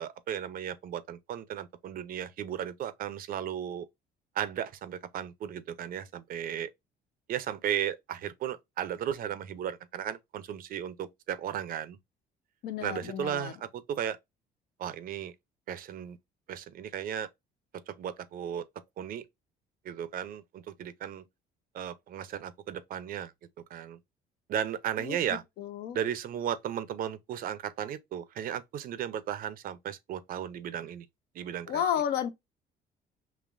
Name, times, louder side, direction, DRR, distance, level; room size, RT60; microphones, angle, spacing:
voice 1, 0.0-3.9 4.3-6.7 7.3-12.0 12.8-14.2 14.8-15.3 15.7-16.2 16.5-17.3 17.9-18.6 19.0-19.2 19.8-21.2 21.7-23.3 23.7-24.0 24.5-25.4 25.9-31.1 31.3-31.8, right 9 dB, 60° right, 0.6 m, -35 dB
voice 2, 12.6-13.5 25.0-26.0 31.7-32.3, left 9 dB, 70° left, 0.7 m, -32 dB
5.1 x 2.9 x 2.5 m
cardioid pair, 110°, 17 cm